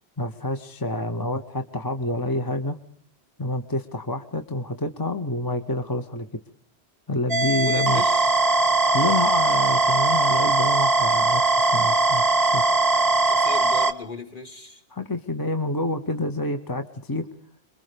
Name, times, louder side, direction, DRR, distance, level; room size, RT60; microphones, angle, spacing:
voice 1, 0.2-2.8 3.4-6.4 7.1-8.0 8.9-12.6 14.9-17.3, left 1 dB, 20° left, 7 dB, 0.9 m, -28 dB
sound 1, 7.3-13.9, right 3 dB, 20° right, 1.1 m, -20 dB
voice 2, 7.6-8.4 13.0-14.8, left 3 dB, 50° left, 2 dB, 2.8 m, -37 dB
26.5 x 22.0 x 5.1 m, 0.62 s
omnidirectional pair, 1.1 m